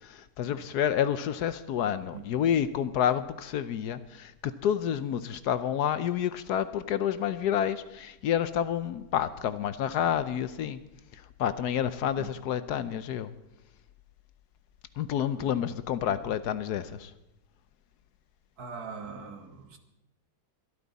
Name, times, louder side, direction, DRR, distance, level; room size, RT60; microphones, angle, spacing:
voice 1, 0.0-10.8 11.1-13.3 15.0-17.1, left 9 dB, 70° left, 13 dB, 1.2 m, -29 dB
voice 2, 18.6-19.8, right 5 dB, 60° right, 6 dB, 1.8 m, -41 dB
22.0 x 13.0 x 4.1 m, 0.92 s
omnidirectional pair, 1.9 m